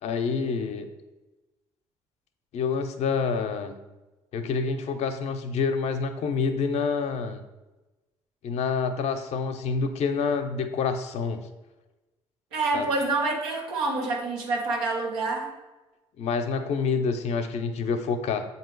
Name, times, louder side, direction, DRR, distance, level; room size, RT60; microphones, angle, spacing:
voice 1, 0.0-0.9 2.5-3.8 4.3-7.4 8.4-11.4 12.7-12.9 16.2-18.4, left 5 dB, 65° left, 7 dB, 0.6 m, -27 dB
voice 2, 12.5-15.5, right 3 dB, 90° right, -1 dB, 1.1 m, -27 dB
7.3 x 2.8 x 4.5 m, 1.1 s
supercardioid pair, 65°, 12 cm